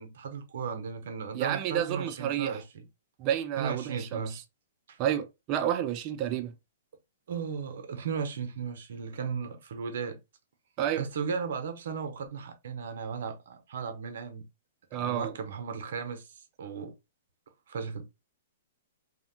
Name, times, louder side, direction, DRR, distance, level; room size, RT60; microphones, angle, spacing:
voice 1, 0.0-2.9 3.6-4.4 4.9-5.0 7.3-10.2 11.0-14.5 14.9-16.3 16.6-16.9 17.7-18.1, right 6 dB, 70° right, 0.7 m, -36 dB
voice 2, 1.3-2.6 3.2-4.2 5.0-6.5 10.8-11.1 14.9-15.4, right 10 dB, 35° right, 0.4 m, -30 dB
2.8 x 2.1 x 2.6 m
hypercardioid pair, 140°, 0 cm